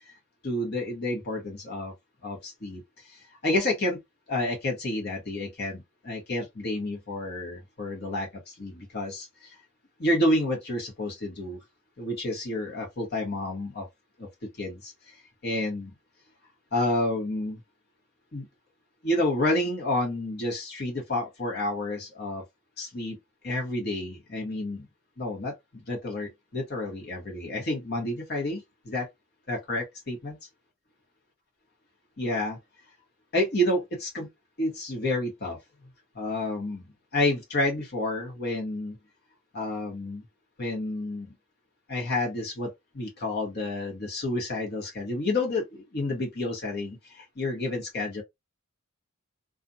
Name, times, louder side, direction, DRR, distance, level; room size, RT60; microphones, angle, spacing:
voice 1, 0.4-1.9 2.2-2.8 3.1-4.0 4.3-8.3 8.6-9.3 10.0-11.6 12.0-13.9 14.2-14.3 14.6-15.1 15.4-15.9 16.7-17.6 18.3-18.5 19.0-22.4 22.8-23.2 23.4-24.9 25.2-29.1 29.5-30.4 32.2-32.6 33.3-34.3 34.6-35.6 36.1-36.8 37.1-39.0 39.5-40.2 40.6-41.3 41.9-48.2, left 1 dB, 50° left, 1.0 m, -29 dB
2.4 x 2.2 x 2.5 m
head